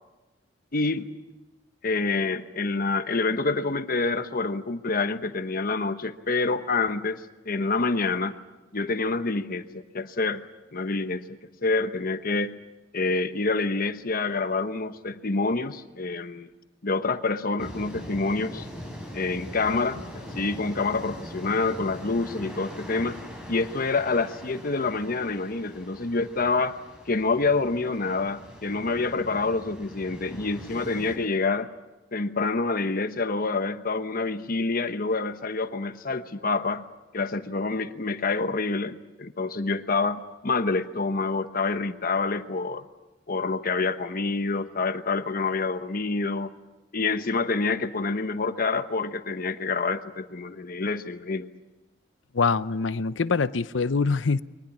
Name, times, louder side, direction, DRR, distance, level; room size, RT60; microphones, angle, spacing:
voice 1, 0.7-1.1 1.8-8.4 8.7-10.4 10.7-12.5 12.9-16.5 16.8-18.6 19.1-23.2 23.5-26.8 27.1-31.7 32.1-36.8 37.1-42.8 43.3-46.5 46.9-51.5, left 3 dB, 50° left, 10 dB, 1.1 m, -27 dB
sound 1, 17.6-31.2, equal, 5° right, 6.4 m, -42 dB
voice 2, 52.3-54.4, left 4 dB, 80° left, 15 dB, 0.7 m, -24 dB
23.5 x 19.5 x 8.6 m, 1.1 s
head